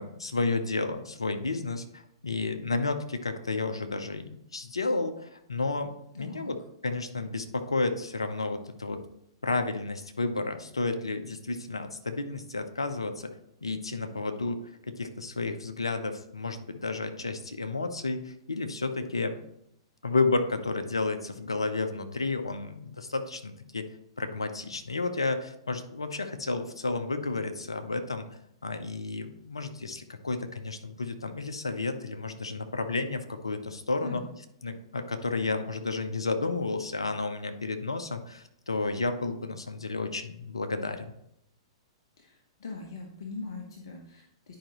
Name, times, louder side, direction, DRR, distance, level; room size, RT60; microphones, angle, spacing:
voice 1, 0.0-6.6 6.8-9.0 9.4-13.3 13.6-19.4 20.0-23.9 24.2-28.3 28.6-34.2 34.6-41.1, left 3 dB, 80° left, 8 dB, 0.8 m, -31 dB
voice 2, 6.2-6.5 34.0-34.3 42.2-44.6, left 3 dB, 60° left, 1 dB, 1.0 m, -41 dB
10.0 x 5.1 x 3.0 m, 0.76 s
figure-of-eight pair, 105°, 3 cm